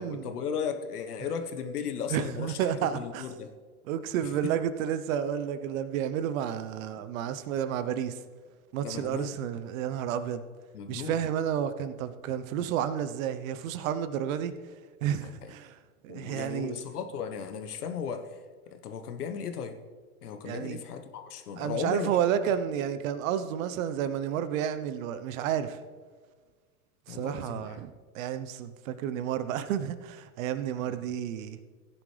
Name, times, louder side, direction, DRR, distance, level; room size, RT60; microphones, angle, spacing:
voice 1, 0.0-3.5 4.2-4.3 7.0-7.1 8.8-9.4 10.7-11.2 15.2-15.5 16.1-18.4 18.7-19.8 20.2-22.1 22.4-22.5 27.1-27.8 30.8-31.1, left 7 dB, 80° left, 7 dB, 1.4 m, -36 dB
voice 2, 2.1-3.2 3.9-8.2 8.7-10.4 10.9-14.5 15.0-15.8 16.0-16.7 20.4-20.8 21.6-25.8 27.1-27.9 28.1-31.6, right 9 dB, 60° right, 12 dB, 1.0 m, -31 dB
16.0 x 10.5 x 3.4 m, 1.5 s
hypercardioid pair, 110°, 45 cm